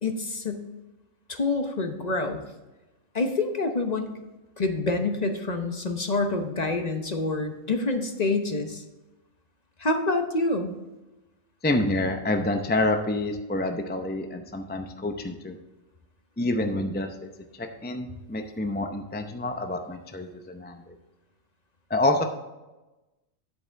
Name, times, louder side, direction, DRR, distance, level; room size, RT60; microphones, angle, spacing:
voice 1, 0.0-0.6 1.3-2.4 3.1-4.1 4.6-8.8 9.8-10.7, left 3 dB, 35° left, 5 dB, 0.9 m, -27 dB
voice 2, 11.6-15.5 16.4-17.3 17.6-21.0 21.9-22.2, left 2 dB, 15° left, 5 dB, 0.4 m, -27 dB
10.0 x 8.5 x 3.4 m, 1.1 s
omnidirectional pair, 1.5 m